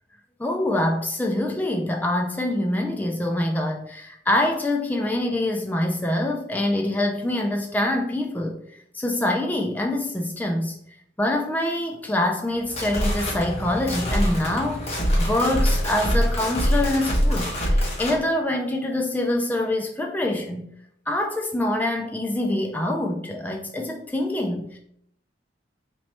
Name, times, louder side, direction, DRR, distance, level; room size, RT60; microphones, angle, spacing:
voice 1, 0.4-8.6 8.9-10.7 11.2-20.7 21.1-24.8, left 1 dB, 10° left, 1 dB, 0.3 m, -25 dB
sound 1, 12.5-18.2, equal, 35° left, 1.1 m, -24 dB
3.1 x 3.0 x 4.3 m, 0.70 s
head